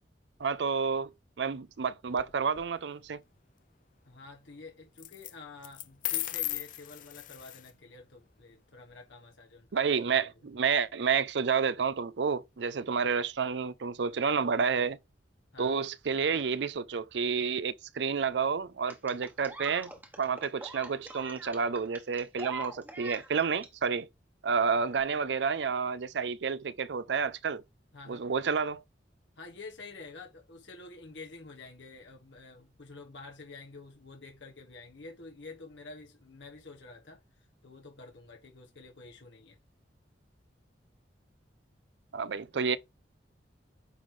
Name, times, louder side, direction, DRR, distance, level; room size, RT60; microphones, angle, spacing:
voice 1, 0.4-1.1 1.4-3.2 9.7-15.0 15.6-19.9 20.2-24.1 24.4-27.6 28.1-28.8 42.1-42.8, right 6 dB, 70° right, 0.5 m, -30 dB
sound 1, 2.1-2.6 5.0-5.3 5.6-7.7, left 14 dB, 45° left, 0.5 m, -36 dB
voice 2, 4.0-9.7 15.5-15.8 27.9-28.2 29.4-37.2 37.6-39.6, left 3 dB, 85° left, 1.4 m, -49 dB
sound 2, 18.9-23.7 24.9-25.0, right 2 dB, 10° right, 1.2 m, -43 dB
8.9 x 3.3 x 3.8 m
head